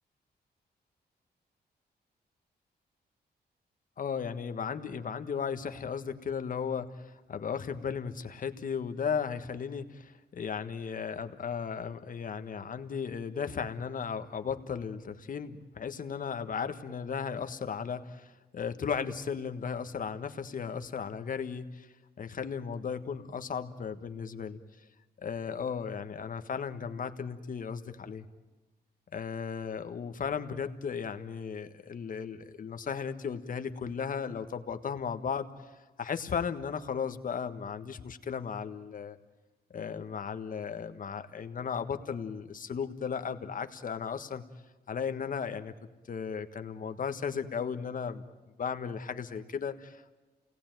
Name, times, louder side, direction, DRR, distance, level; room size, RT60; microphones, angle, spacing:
voice 1, 4.0-21.9 22.2-24.6 25.2-28.2 29.1-35.5 36.0-39.2 39.7-44.4 44.9-45.7 46.1-48.2 48.6-50.2, left 6 dB, 50° left, 9 dB, 1.5 m, -35 dB
29.0 x 19.0 x 9.2 m, 1.2 s
cardioid pair, 110°, 17 cm